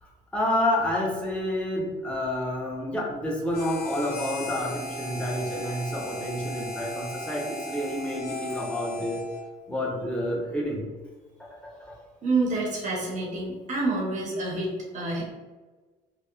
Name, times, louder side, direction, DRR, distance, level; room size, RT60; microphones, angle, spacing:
voice 1, 0.0-9.2 9.7-10.9 11.4-12.0, left 1 dB, 5° left, -3 dB, 0.6 m, -29 dB
Harmonica, 3.5-9.5, left 1 dB, 65° left, 0.5 m, -37 dB
voice 2, 12.2-15.2, right 2 dB, 50° right, -3 dB, 0.6 m, -28 dB
2.8 x 2.0 x 2.3 m, 1.3 s
cardioid pair, 110°, 17 cm